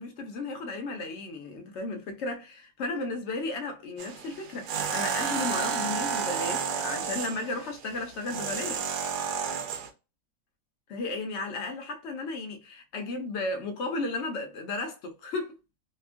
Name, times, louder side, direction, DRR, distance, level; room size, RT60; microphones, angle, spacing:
voice 1, 0.0-9.0 10.9-15.5, left 2 dB, 55° left, 0.8 m, -34 dB
sound 1, 4.0-9.9, right 7 dB, 80° right, 1.1 m, -31 dB
2.9 x 2.3 x 2.4 m
omnidirectional pair, 1.7 m